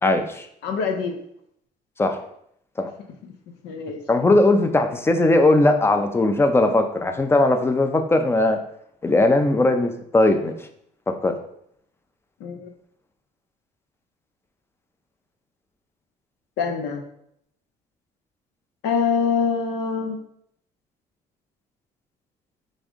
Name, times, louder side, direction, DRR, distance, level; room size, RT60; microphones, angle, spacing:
voice 1, 0.0-0.5 2.0-2.2 2.8-2.9 4.1-8.6 9.0-10.5 11.1-11.4, left 2 dB, 15° left, 7 dB, 0.4 m, -19 dB
voice 2, 0.6-1.2 3.6-4.0 12.4-12.7 16.6-17.0 18.8-20.2, left 6 dB, 85° left, 4 dB, 0.6 m, -24 dB
5.2 x 2.6 x 3.5 m, 0.72 s
cardioid pair, 110°, 17 cm